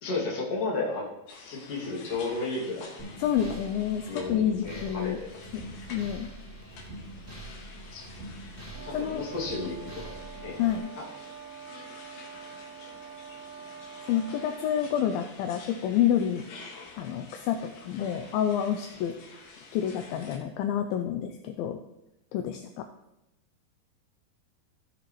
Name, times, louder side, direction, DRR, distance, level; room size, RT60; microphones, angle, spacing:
voice 1, 0.0-2.9 4.1-5.1 7.9-8.1 8.8-10.0 10.4-10.6, left 3 dB, 40° left, -4 dB, 3.0 m, -33 dB
sound 1, 1.3-20.4, left 4 dB, 65° left, 2.7 m, -49 dB
sound 2, 3.0-10.8, right 1 dB, 5° left, 3.8 m, -44 dB
voice 2, 3.2-5.2 5.5-5.6 5.9-6.3 8.9-9.2 10.6-10.9 14.1-16.4 17.0-19.1 19.7-21.8 22.3-22.9, left 9 dB, 80° left, 6 dB, 2.2 m, -28 dB
sound 3, 8.7-15.0, right 8 dB, 70° right, 1.8 m, -45 dB
15.0 x 7.0 x 3.1 m, 0.90 s
omnidirectional pair, 4.5 m